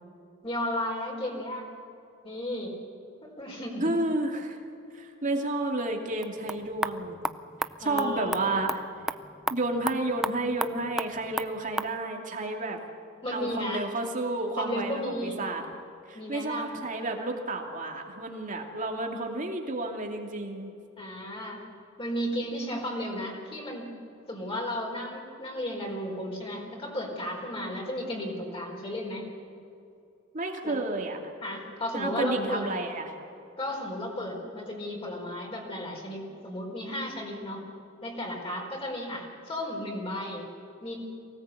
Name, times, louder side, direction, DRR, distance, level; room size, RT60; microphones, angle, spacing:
voice 1, 0.4-1.6 2.2-2.8 3.2-3.9 7.8-8.4 13.2-13.9 14.6-15.4 16.1-16.8 21.0-21.6 22.0-23.9 24.3-29.3 30.6-30.8 31.4-32.7 33.6-37.6 38.0-40.5 40.8-41.0, left 1 dB, 30° left, -2 dB, 4.6 m, -34 dB
voice 2, 3.8-4.6 4.9-7.2 7.8-8.8 9.5-12.8 13.3-15.6 16.1-20.7 30.3-31.2 31.9-33.1, right 2 dB, 40° right, 2 dB, 2.6 m, -31 dB
sound 1, 6.1-12.0, right 1 dB, 5° right, 0.5 m, -35 dB
23.5 x 18.0 x 8.5 m, 2.6 s
head